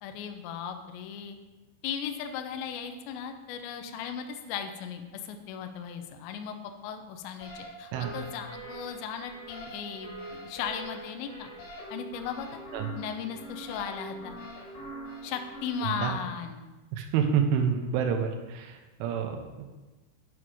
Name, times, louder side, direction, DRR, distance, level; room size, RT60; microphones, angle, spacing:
voice 1, 0.0-1.4 1.8-6.6 6.8-11.5 11.9-12.6 13.0-14.4 15.2-16.7, left 7 dB, 80° left, 6 dB, 2.5 m, -37 dB
sound 1, 7.4-15.8, right 1 dB, 50° left, 3.3 m, -43 dB
voice 2, 16.9-19.7, right 7 dB, 80° right, 5 dB, 3.2 m, -28 dB
7.8 x 7.1 x 4.9 m, 1.2 s
omnidirectional pair, 5.9 m